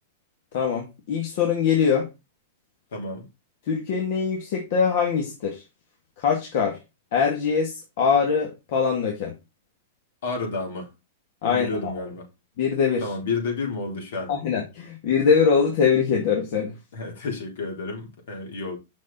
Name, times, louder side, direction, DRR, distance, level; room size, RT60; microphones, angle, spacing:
voice 1, 0.5-2.1 3.7-5.6 6.2-6.8 7.1-9.3 11.4-12.0 12.6-13.1 14.3-16.7, left 6 dB, 60° left, 2.1 m, -23 dB
voice 2, 2.9-3.2 10.2-10.9 11.4-12.3 13.0-14.3 16.9-18.8, left 3 dB, 75° left, 4.0 m, -30 dB
6.5 x 6.2 x 4.3 m
hypercardioid pair, 130°, 0 cm